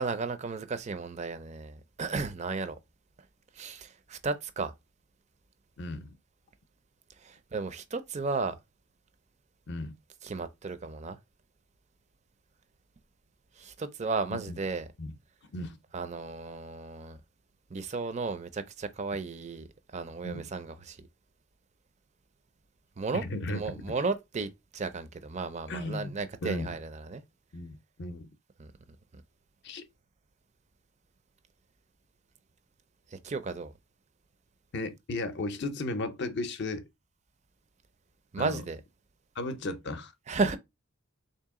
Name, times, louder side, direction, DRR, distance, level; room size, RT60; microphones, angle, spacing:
voice 1, 0.0-2.8 3.5-4.7 7.2-8.6 10.2-11.2 13.6-14.9 15.9-17.2 17.7-19.7 19.9-21.0 23.0-27.2 28.6-28.7 29.1-29.2 33.1-33.7 38.3-38.8 40.3-40.6, right 4 dB, 30° right, 0.4 m, -34 dB
voice 2, 5.8-6.1 9.7-9.9 14.3-14.6 15.0-15.1 15.5-15.8 20.2-20.4 23.1-23.8 25.7-26.1 26.4-26.7 27.5-28.3 29.6-29.8 34.7-36.9 38.4-38.6 39.4-40.1, left 2 dB, 50° left, 0.5 m, -35 dB
3.5 x 2.8 x 3.6 m
head